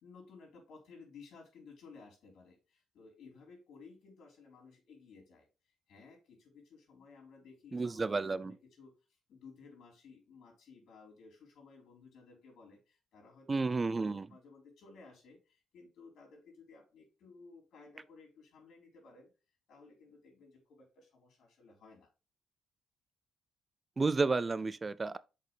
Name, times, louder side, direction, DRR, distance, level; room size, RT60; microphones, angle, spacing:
voice 1, 0.0-19.3 19.7-22.1, left 4 dB, 70° left, 3.8 m, -57 dB
voice 2, 7.7-8.5 13.5-14.3 24.0-25.2, right 3 dB, 30° right, 0.3 m, -31 dB
6.6 x 5.1 x 3.3 m
cardioid pair, 90°, 0 cm